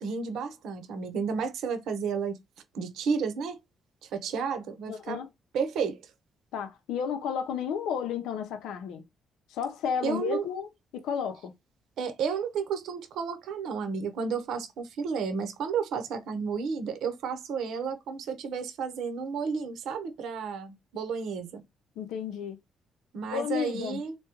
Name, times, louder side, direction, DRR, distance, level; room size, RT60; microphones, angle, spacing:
voice 1, 0.0-2.4 2.7-3.6 4.0-5.2 5.5-6.0 10.0-10.4 12.0-21.6 23.1-24.1, right 6 dB, 80° right, 0.8 m, -32 dB
voice 2, 4.9-5.3 6.5-9.0 9.5-11.5 22.0-22.6 23.3-24.0, left 7 dB, 85° left, 0.6 m, -32 dB
3.4 x 2.2 x 2.9 m
cardioid pair, 90°, 0 cm